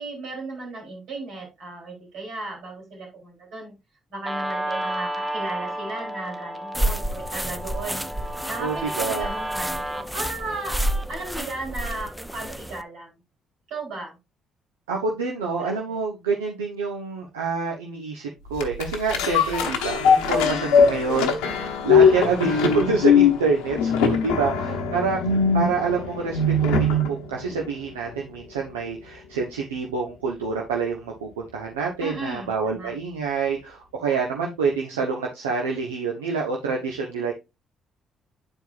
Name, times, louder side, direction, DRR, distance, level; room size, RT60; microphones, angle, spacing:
voice 1, 0.0-3.8 4.1-8.1 8.5-10.8 11.1-13.1 13.7-14.2 15.6-16.0 22.0-22.4 24.2-24.9 32.0-32.9, right 2 dB, 70° right, -1 dB, 3.6 m, -35 dB
Guitar, 4.3-11.2, right 1 dB, 20° right, 0.9 m, -32 dB
sound 1, 6.7-12.8, right 1 dB, 5° right, 0.6 m, -30 dB
voice 2, 8.6-9.3 14.9-25.2 25.5-37.3, right 5 dB, 90° right, 0 dB, 0.9 m, -27 dB
sound 2, 18.6-27.2 27.6-27.7, left 5 dB, 80° left, 0.9 m, -20 dB
9.8 x 4.6 x 2.4 m, 0.23 s
hypercardioid pair, 50°, 0 cm